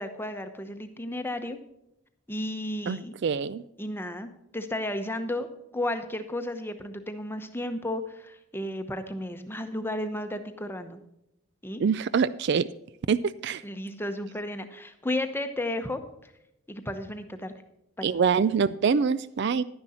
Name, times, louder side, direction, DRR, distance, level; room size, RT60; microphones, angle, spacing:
voice 1, 0.0-1.6 2.3-3.1 3.8-11.0 11.6-11.8 13.6-16.3 16.7-17.5 18.0-18.1, left 1 dB, 10° left, 8 dB, 0.9 m, -33 dB
voice 2, 2.9-3.6 11.8-12.7 13.1-13.2 13.4-13.6 18.0-19.6, right 6 dB, 55° right, 16 dB, 0.3 m, -25 dB
11.5 x 10.0 x 4.3 m, 0.82 s
head